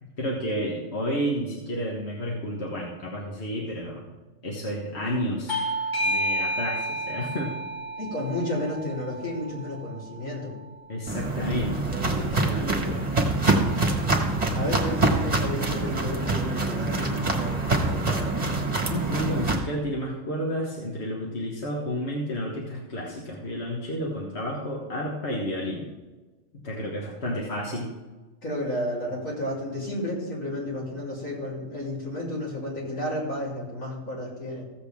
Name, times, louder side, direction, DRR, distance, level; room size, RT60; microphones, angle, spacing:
voice 1, 0.0-4.1 4.4-5.6 6.0-7.6 10.9-11.8 12.0-13.1 14.5-15.0 17.8-18.3 18.9-25.9 26.6-27.9, equal, 55° left, -2 dB, 1.7 m, -31 dB
Bell / Doorbell, 5.5-10.7, right 1 dB, 35° left, 1.7 m, -31 dB
voice 2, 8.0-10.5 14.5-17.3 28.4-34.6, left 1 dB, 75° left, -5 dB, 3.8 m, -32 dB
Walk footsteps, 11.1-19.5, right 2 dB, 30° right, 1.6 m, -25 dB
15.0 x 8.0 x 3.5 m, 1.2 s
omnidirectional pair, 1.4 m